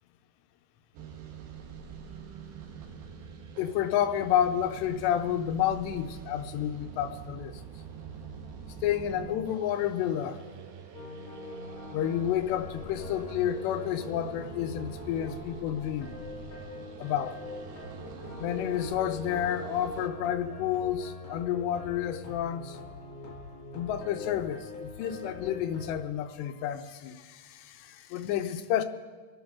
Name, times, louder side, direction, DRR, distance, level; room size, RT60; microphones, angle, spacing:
sound 1, 0.9-20.1, right 6 dB, 70° right, 2.8 m, -45 dB
voice 1, 3.6-7.6 8.8-10.4 11.9-16.2 17.0-17.4 18.4-22.8 23.7-28.8, left 10 dB, 85° left, 8 dB, 2.9 m, -30 dB
sound 2, 10.9-26.0, left 3 dB, 45° left, 3.2 m, -43 dB
25.5 x 11.5 x 3.7 m, 1.4 s
omnidirectional pair, 4.9 m